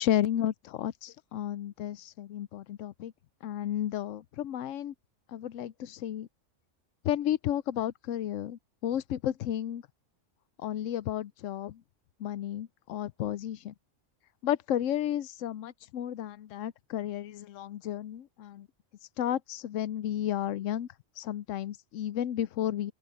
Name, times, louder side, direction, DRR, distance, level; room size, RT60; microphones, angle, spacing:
voice 1, 0.0-3.1 3.4-4.9 5.3-6.3 7.0-9.8 10.6-11.8 12.2-13.7 14.4-18.7 19.2-20.9 21.2-22.9, left 11 dB, 85° left, 1.0 m, -32 dB
open air
omnidirectional pair, 1.3 m